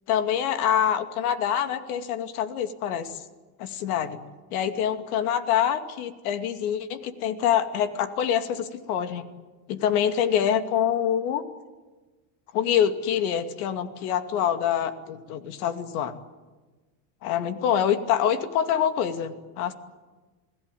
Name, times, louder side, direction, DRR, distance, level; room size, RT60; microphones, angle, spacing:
voice 1, 0.1-3.2 3.6-4.2 4.5-9.2 9.7-11.4 12.5-16.1 17.2-19.7, left 9 dB, 85° left, 8 dB, 2.5 m, -25 dB
28.5 x 18.5 x 9.3 m, 1.2 s
cardioid pair, 165°, 43 cm